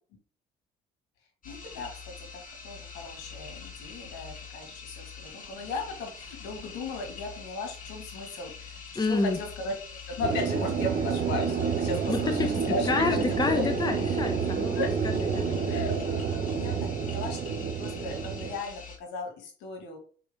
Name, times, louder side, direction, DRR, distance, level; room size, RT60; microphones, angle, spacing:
voice 1, 1.4-1.9 2.2-9.7 10.1-13.7 14.8-14.9 15.7-20.0, left 3 dB, 85° left, 3 dB, 2.0 m, -36 dB
sound 1, 1.4-19.0, left 5 dB, 50° left, 2.3 m, -44 dB
voice 2, 8.9-9.4 12.1-12.5 12.9-14.8 15.0-15.5, left 3 dB, 25° left, 6 dB, 1.1 m, -28 dB
sound 2, 10.2-18.6, right 6 dB, 60° right, 1.5 m, -29 dB
6.0 x 4.3 x 3.7 m, 0.42 s
supercardioid pair, 75°, 18 cm